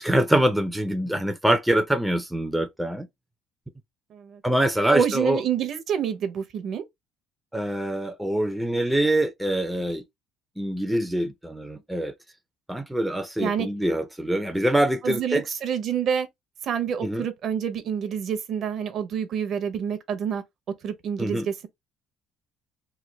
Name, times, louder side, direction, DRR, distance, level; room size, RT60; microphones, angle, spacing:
voice 1, 0.0-3.1 4.4-5.4 7.5-10.0 10.6-12.1 12.7-15.4 17.0-17.2 21.2-21.5, right 1 dB, 5° right, 0.4 m, -24 dB
voice 2, 4.1-4.4 4.9-6.8 13.4-13.7 15.0-16.3 16.6-20.4 20.8-21.7, right 8 dB, 45° right, 0.6 m, -27 dB
3.1 x 2.2 x 3.2 m
cardioid pair, 155°, 0 cm